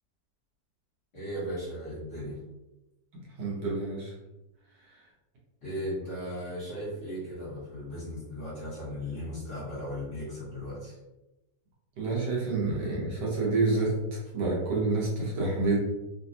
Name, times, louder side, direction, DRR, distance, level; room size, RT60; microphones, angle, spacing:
voice 1, 1.1-2.4 5.6-11.0, equal, 45° left, -8 dB, 1.4 m, -36 dB
voice 2, 3.4-4.1 4.9-5.0 12.0-15.8, right 3 dB, 70° right, -4 dB, 1.4 m, -28 dB
3.3 x 2.3 x 2.6 m, 1.0 s
omnidirectional pair, 2.0 m